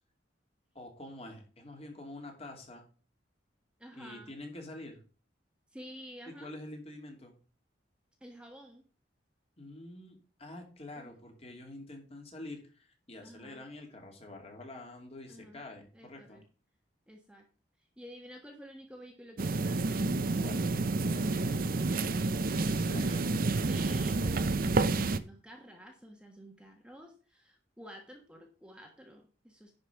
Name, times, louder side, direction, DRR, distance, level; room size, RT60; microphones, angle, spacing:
voice 1, 0.7-2.9 3.9-5.0 6.4-7.4 9.6-16.4 20.4-20.7 22.4-23.3, left 2 dB, 35° left, 3 dB, 2.6 m, -46 dB
voice 2, 3.8-4.3 5.7-6.5 8.2-8.8 11.0-11.1 13.2-13.6 15.3-15.6 15.9-16.4 17.1-17.4 18.0-20.1 21.2-21.7 23.7-29.8, equal, 5° right, 2 dB, 1.4 m, -50 dB
sound 1, 19.4-25.2, right 3 dB, 50° right, 0.6 m, -29 dB
10.5 x 5.3 x 5.2 m, 0.38 s
head